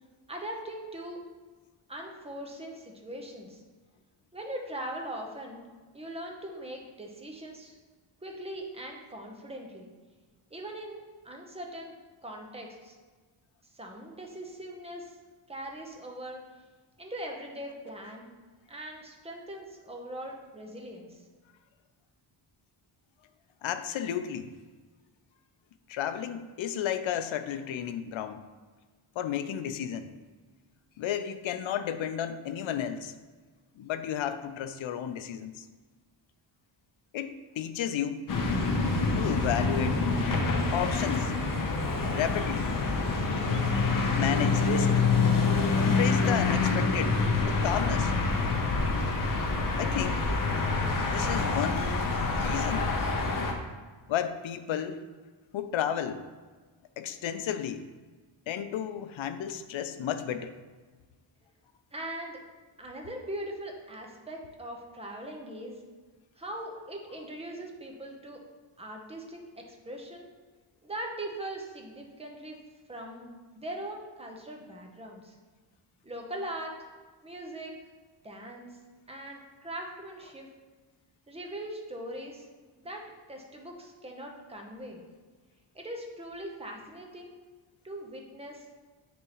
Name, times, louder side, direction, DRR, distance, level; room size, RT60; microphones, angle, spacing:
voice 1, 0.3-1.3 1.9-3.6 4.3-5.7 5.9-7.8 8.2-9.9 10.5-11.9 12.2-12.9 13.7-15.2 15.5-16.4 17.0-18.3 18.7-21.2 61.9-62.4 62.8-65.8 66.4-68.4 68.8-70.3 70.8-72.6 72.9-73.3 73.5-75.3 76.0-76.7 77.2-77.7 78.2-78.7 79.1-80.5 81.3-82.5 82.8-83.0 83.3-85.0 85.7-87.3 87.8-88.7, right 1 dB, 15° right, 1 dB, 0.8 m, -40 dB
voice 2, 23.6-24.5 25.9-28.4 29.2-30.1 31.0-33.1 33.8-35.7 37.1-38.3 39.2-40.0 40.7-41.3 42.0-42.7 44.1-45.0 45.8-48.1 49.8-50.2 51.1-52.9 54.1-55.0 55.5-56.2 57.0-57.9 58.5-60.5, left 9 dB, 75° left, 10 dB, 0.6 m, -32 dB
sound 1, 38.3-53.5, left 3 dB, 45° left, 0.8 m, -26 dB
9.4 x 3.6 x 3.0 m, 1.4 s
wide cardioid pair, 145°, 47 cm